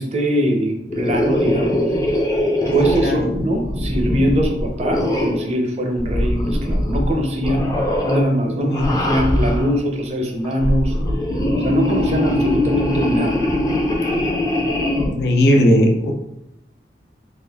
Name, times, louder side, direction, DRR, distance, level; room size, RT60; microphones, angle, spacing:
voice 1, 0.0-1.9 2.6-7.7 8.0-10.9 11.6-13.5, equal, 35° right, 2 dB, 0.6 m, -22 dB
sound 1, 0.9-5.5 6.0-7.1 7.4-8.2 8.7-9.7 10.4-15.1, left 1 dB, 20° left, 0.5 m, -21 dB
voice 2, 8.5-8.9 15.0-16.1, left 1 dB, 70° left, 3 dB, 0.6 m, -17 dB
3.7 x 2.4 x 3.4 m, 0.85 s
head